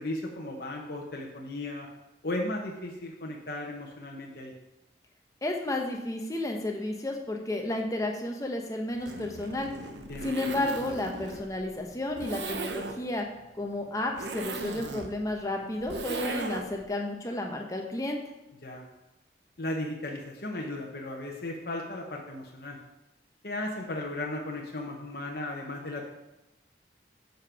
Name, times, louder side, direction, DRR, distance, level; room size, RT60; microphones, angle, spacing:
voice 1, 0.0-1.9 2.2-4.5 10.1-10.3 18.6-18.9 19.6-22.8 23.4-26.1, left 1 dB, 60° left, 0 dB, 0.9 m, -35 dB
voice 2, 5.4-9.7 10.2-13.3 13.6-18.2, left 1 dB, 20° left, 1 dB, 0.9 m, -32 dB
Zipper (clothing), 8.9-16.9, right 3 dB, 80° right, 0.8 m, -38 dB
7.2 x 5.2 x 5.7 m, 0.96 s
head